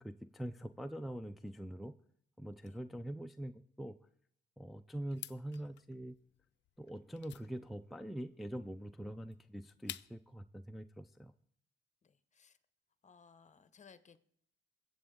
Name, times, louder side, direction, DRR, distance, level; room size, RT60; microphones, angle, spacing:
voice 1, 0.0-1.9 2.4-4.0 4.6-6.2 6.8-11.3, right 1 dB, ahead, 6 dB, 0.4 m, -44 dB
sound 1, 5.1-10.4, left 13 dB, 65° left, 0.4 m, -51 dB
voice 2, 12.0-12.6 13.0-14.2, left 6 dB, 35° left, 13 dB, 0.9 m, -61 dB
22.0 x 7.8 x 3.7 m, 0.69 s
cardioid pair, 90°, 20 cm